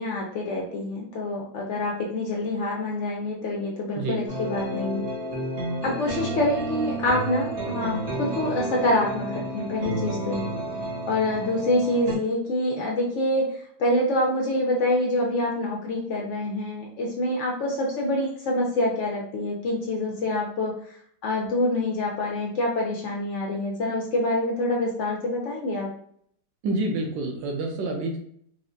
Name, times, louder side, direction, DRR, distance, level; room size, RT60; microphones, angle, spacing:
voice 1, 0.0-5.0 5.8-10.5 11.1-20.7 21.2-25.9, left 1 dB, 85° left, -2 dB, 0.6 m, -26 dB
sound 1, 4.3-12.2, right 2 dB, 55° right, 1.1 m, -31 dB
voice 2, 26.6-28.2, right 2 dB, 80° right, 2 dB, 1.4 m, -28 dB
4.5 x 2.1 x 2.5 m, 0.64 s
omnidirectional pair, 2.0 m